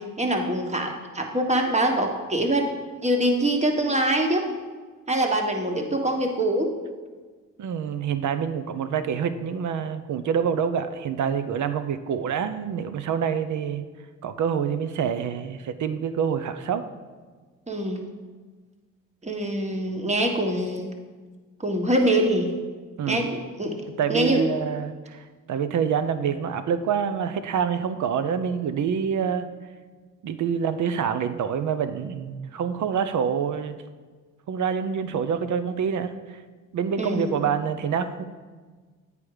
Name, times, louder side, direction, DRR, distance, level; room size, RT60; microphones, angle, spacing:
voice 1, 0.0-2.7 3.0-4.5 5.1-6.7 17.7-18.0 19.2-20.9 21.6-22.5 23.1-23.7 24.1-24.5 37.0-37.3, right 1 dB, 20° right, 2 dB, 1.3 m, -24 dB
voice 2, 7.6-13.8 14.2-16.8 23.0-23.3 24.0-29.5 30.2-33.7 34.5-36.4 36.7-38.2, right 7 dB, 60° right, 11 dB, 0.7 m, -26 dB
8.4 x 5.0 x 4.8 m, 1.4 s
supercardioid pair, 60°, 34 cm